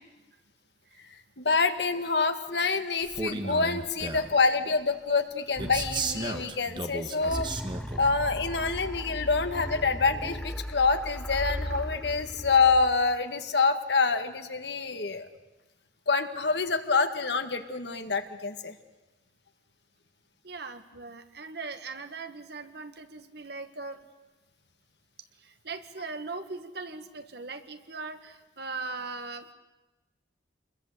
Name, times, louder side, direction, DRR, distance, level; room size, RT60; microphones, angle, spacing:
voice 1, 1.4-7.6 8.0-15.3 16.1-18.8, left 4 dB, 65° left, 7 dB, 1.7 m, -26 dB
Male speech man speaking, 3.0-4.4 5.6-8.0, right 3 dB, 25° right, 1.6 m, -34 dB
sound 1, 5.6-6.7 7.2-13.2, equal, 5° left, 0.9 m, -37 dB
voice 2, 20.4-24.0 25.4-29.5, right 3 dB, 60° right, 8 dB, 1.8 m, -39 dB
27.5 x 21.5 x 8.2 m, 1.1 s
head